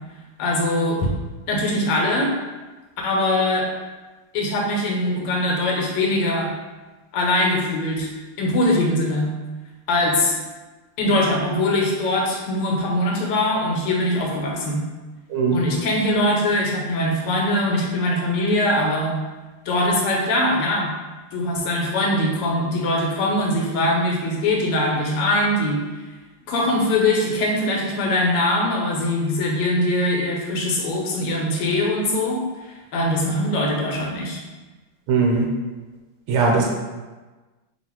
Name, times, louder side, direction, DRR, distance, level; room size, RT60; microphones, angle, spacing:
voice 1, 0.4-1.1 1.5-2.3 3.0-3.7 4.3-6.5 7.1-8.1 8.4-9.3 9.9-10.4 11.0-14.9 15.5-19.2 19.6-20.9 21.3-25.8 26.4-34.4, left 1 dB, 85° left, -1 dB, 1.7 m, -22 dB
voice 2, 15.3-15.6 35.1-35.5 36.3-36.6, right 4 dB, 80° right, -1 dB, 1.6 m, -19 dB
3.8 x 2.5 x 4.4 m, 1.2 s
omnidirectional pair, 2.4 m